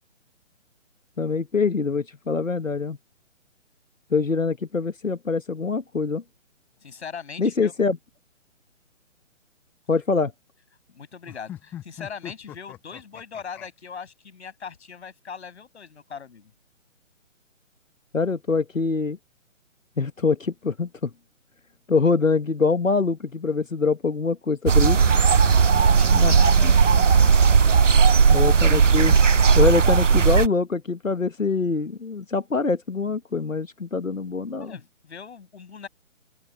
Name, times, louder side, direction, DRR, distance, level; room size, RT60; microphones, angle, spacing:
voice 1, 1.2-3.0 4.1-6.2 7.4-8.0 9.9-10.3 18.1-19.2 20.0-21.1 21.9-25.0 26.1-26.3 26.6-26.7 28.3-34.8, left 4 dB, 90° left, 1.5 m, -24 dB
voice 2, 6.8-7.7 10.9-16.5 25.6-27.0 34.6-35.9, left 6 dB, 60° left, 7.5 m, -40 dB
sound 1, 11.3-13.7, left 11 dB, 5° left, 0.7 m, -40 dB
sound 2, 24.7-30.5, right 6 dB, 70° right, 1.2 m, -16 dB
open air
figure-of-eight pair, 145°, 38 cm